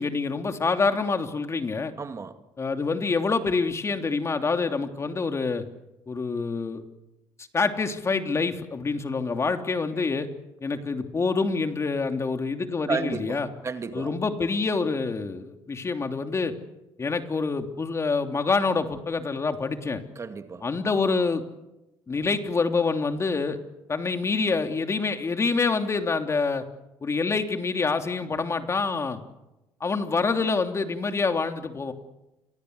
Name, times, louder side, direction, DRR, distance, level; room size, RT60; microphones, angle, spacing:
voice 1, 0.0-1.9 2.6-5.6 6.1-6.8 7.5-10.3 10.6-13.5 13.9-16.5 17.0-20.0 20.6-21.4 22.1-23.6 23.9-26.7 27.0-29.2 29.8-31.9, left 4 dB, 30° left, 3.1 m, -26 dB
voice 2, 2.0-2.4 12.9-14.1 20.2-20.7, right 5 dB, 30° right, 2.2 m, -32 dB
28.5 x 23.5 x 8.2 m
supercardioid pair, 90°, 9 cm